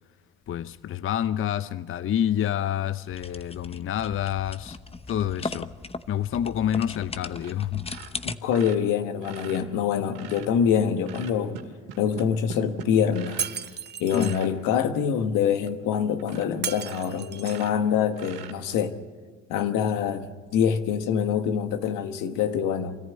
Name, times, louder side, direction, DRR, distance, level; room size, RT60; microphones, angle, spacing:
voice 1, 0.5-4.8 5.1-5.7 6.1-7.9 14.1-14.4, left 10 dB, 40° left, 0.6 m, -28 dB
sound 1, 3.1-8.4, left 3 dB, 20° left, 0.9 m, -38 dB
sound 2, 7.4-7.6 7.8-10.5 11.0-13.6 14.0-14.5 15.2-15.3 15.6-15.7 16.2-16.5 16.8-18.9 20.4-20.6, right 7 dB, 80° right, 2.2 m, -42 dB
voice 2, 8.2-11.6 12.0-13.4 14.0-18.9 19.5-23.0, left 8 dB, 75° left, 1.4 m, -25 dB
Shatter, 13.4-14.4 16.6-17.7, right 8 dB, 35° right, 0.6 m, -34 dB
24.5 x 14.0 x 8.5 m
supercardioid pair, 65°, 32 cm